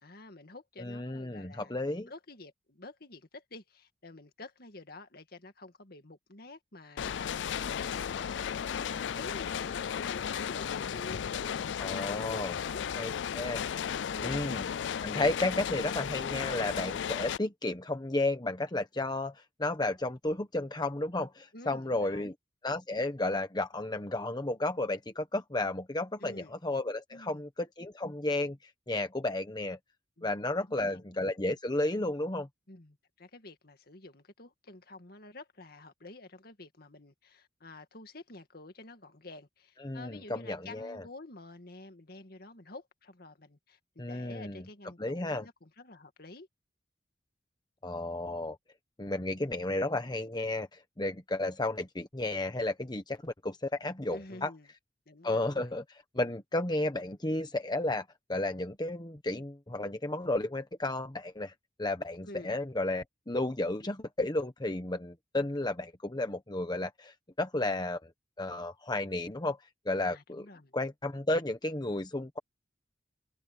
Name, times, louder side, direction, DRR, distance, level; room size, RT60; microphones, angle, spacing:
voice 1, 0.0-1.8 2.1-12.8 14.1-14.4 21.5-22.3 26.2-26.6 27.1-27.5 30.2-30.3 30.6-31.1 32.7-46.5 54.0-54.7 55.1-55.7 62.2-62.6 70.1-70.8, left 2 dB, 55° left, 2.1 m, -49 dB
voice 2, 0.8-2.1 11.8-12.6 13.0-13.6 14.2-22.3 22.6-29.8 30.2-32.5 39.8-41.0 44.0-44.6 45.0-45.5 47.8-48.6 49.0-54.5 55.2-61.5 61.8-68.1 68.4-69.6 69.8-70.5 70.7-72.4, left 2 dB, 25° left, 1.1 m, -33 dB
sound 1, 7.0-17.4, left 8 dB, 85° left, 0.4 m, -34 dB
head